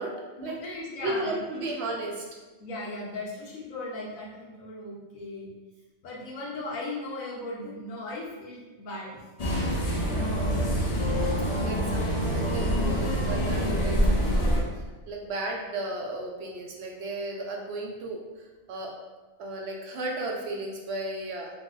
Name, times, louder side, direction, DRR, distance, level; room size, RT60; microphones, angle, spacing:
voice 1, 0.1-1.7 2.6-5.5 6.0-9.2, left 2 dB, 85° left, -3 dB, 1.2 m, -37 dB
voice 2, 0.9-2.2 10.2-10.5 11.6-14.0 14.3-18.9 19.4-21.5, right 2 dB, 65° right, 0 dB, 0.7 m, -34 dB
sound 1, 9.4-14.6, equal, 50° left, 0.4 m, -25 dB
3.2 x 2.0 x 3.7 m, 1.2 s
omnidirectional pair, 1.4 m